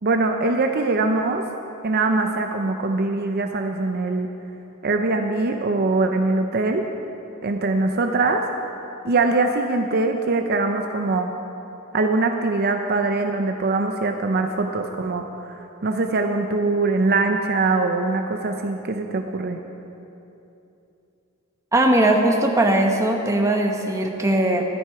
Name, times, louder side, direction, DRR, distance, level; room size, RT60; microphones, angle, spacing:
voice 1, 0.0-1.4 1.8-4.3 4.8-6.8 7.4-8.4 9.0-11.3 11.9-19.6, right 3 dB, 50° right, 4 dB, 0.6 m, -22 dB
voice 2, 21.7-24.6, right 1 dB, 15° right, 2 dB, 1.0 m, -19 dB
12.5 x 11.0 x 4.8 m, 2.9 s
head